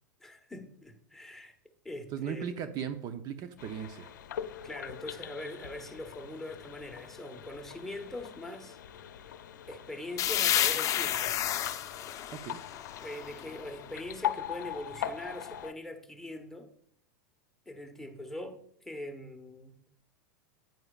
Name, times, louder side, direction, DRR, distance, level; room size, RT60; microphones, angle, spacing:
voice 1, 0.2-1.5 1.8-2.7 4.6-8.8 9.7-11.4 13.0-16.7 17.7-19.8, left 1 dB, 5° left, 3 dB, 1.2 m, -42 dB
voice 2, 2.1-4.1 12.4-12.6, right 8 dB, 40° right, 9 dB, 0.7 m, -37 dB
sound 1, 3.6-15.7, left 10 dB, 85° left, 0.6 m, -41 dB
sound 2, 10.2-13.8, left 11 dB, 35° left, 0.7 m, -31 dB
10.5 x 9.2 x 2.4 m, 0.67 s
hypercardioid pair, 110°, 10 cm